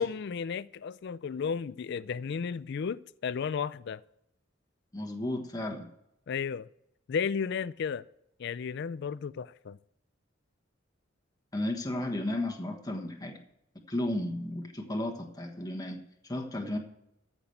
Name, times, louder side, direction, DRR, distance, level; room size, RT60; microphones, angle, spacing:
voice 1, 0.0-4.0 6.3-6.7 7.1-8.0 8.4-9.8, left 6 dB, 60° left, 0.4 m, -33 dB
voice 2, 4.9-5.9 11.5-13.4 13.7-16.8, left 1 dB, 20° left, 1.3 m, -34 dB
14.0 x 6.1 x 7.8 m
head